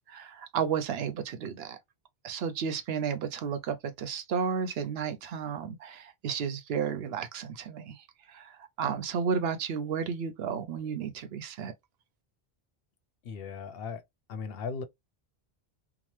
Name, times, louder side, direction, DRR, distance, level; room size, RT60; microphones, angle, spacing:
voice 1, 0.1-1.8 2.2-11.7, right 7 dB, 75° right, 0.8 m, -33 dB
voice 2, 13.2-14.0 14.3-14.8, left 5 dB, 70° left, 0.8 m, -37 dB
2.8 x 2.0 x 3.1 m
omnidirectional pair, 1.0 m